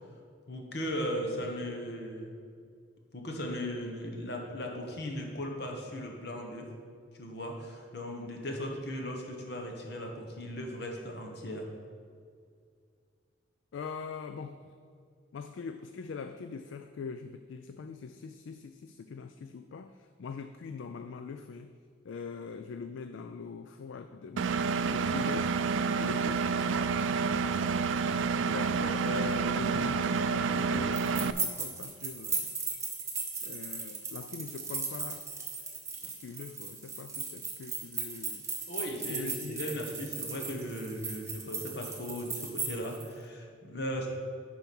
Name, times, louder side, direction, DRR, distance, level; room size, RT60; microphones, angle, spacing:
voice 1, 0.5-2.3 3.1-6.7 7.1-11.7 38.7-44.1, equal, 55° left, 1 dB, 1.2 m, -37 dB
voice 2, 13.7-14.7 15.3-21.7 22.0-25.7 25.9-26.6 28.0-28.2 28.4-32.5 33.4-35.2 36.0-38.5 39.1-40.0, left 5 dB, 75° left, 8 dB, 0.3 m, -42 dB
Engine, 24.4-31.3, right 5 dB, 75° right, 0.3 m, -29 dB
sound 1, 30.9-43.1, right 5 dB, 15° right, 0.9 m, -37 dB
10.5 x 4.6 x 5.4 m, 2.2 s
head